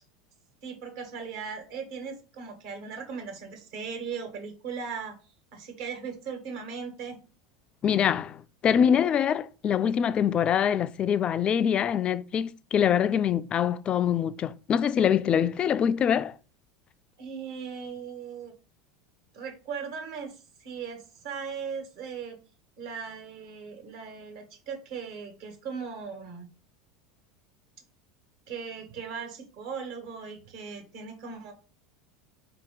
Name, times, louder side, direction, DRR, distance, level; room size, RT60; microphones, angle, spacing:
voice 1, 0.6-5.1 5.5-7.2 17.2-18.5 19.3-22.4 22.8-26.5 28.5-31.5, right 6 dB, 65° right, 1.4 m, -38 dB
voice 2, 7.8-16.3, left 8 dB, 35° left, 0.3 m, -24 dB
4.6 x 2.8 x 3.8 m
hypercardioid pair, 85°, 3 cm